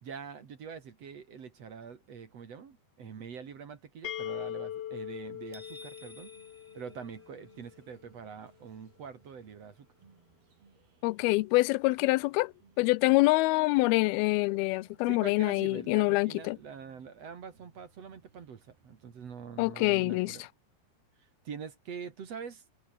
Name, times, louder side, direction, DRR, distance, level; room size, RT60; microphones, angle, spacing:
voice 1, 0.0-6.3 6.7-9.9 15.1-20.4 21.4-22.7, right 6 dB, 45° right, 2.9 m, -44 dB
sound 1, 4.0-7.8, left 11 dB, 70° left, 1.5 m, -41 dB
sound 2, 5.0-19.7, right 5 dB, 85° right, 8.0 m, -65 dB
sound 3, 5.5-7.7, left 1 dB, 5° left, 3.1 m, -54 dB
voice 2, 11.0-16.6 19.6-20.4, left 22 dB, 85° left, 2.5 m, -26 dB
omnidirectional pair, 4.4 m